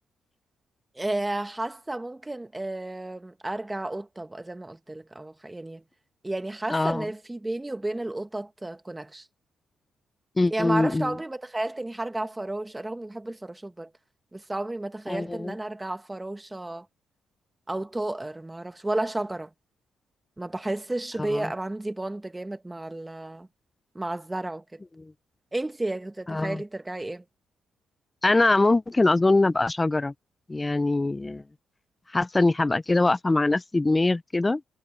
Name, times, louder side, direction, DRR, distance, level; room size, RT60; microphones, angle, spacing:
voice 1, 0.9-5.8 6.2-9.2 10.5-13.9 14.3-16.9 17.7-19.5 20.4-23.5 23.9-24.8 25.5-27.2, right 2 dB, 15° right, 1.3 m, -32 dB
voice 2, 6.7-7.1 10.4-11.2 15.1-15.5 21.2-21.5 25.0-25.1 26.3-26.6 28.2-30.1 30.5-31.4 32.1-34.6, left 2 dB, 15° left, 0.3 m, -23 dB
cardioid pair, 110°, 0 cm